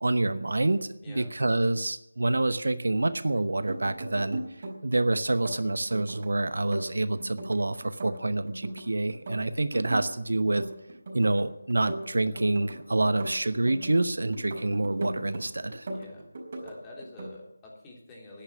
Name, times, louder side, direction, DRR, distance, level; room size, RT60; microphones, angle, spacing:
voice 1, 0.0-4.4 4.8-10.6 11.1-15.9, right 2 dB, 70° right, 12 dB, 0.9 m, -27 dB
voice 2, 1.0-1.3 15.9-16.3 16.6-18.4, left 2 dB, 15° left, -3 dB, 3.2 m, -46 dB
sound 1, 3.5-5.0 5.3-6.3 6.6-8.8 9.1-10.1 10.4-11.4 11.7-14.0 14.3-15.4 15.7-16.7 17.0-17.4, right 2 dB, 40° right, 4.5 m, -38 dB
11.0 x 10.5 x 10.0 m, 0.87 s
figure-of-eight pair, 160°, 0 cm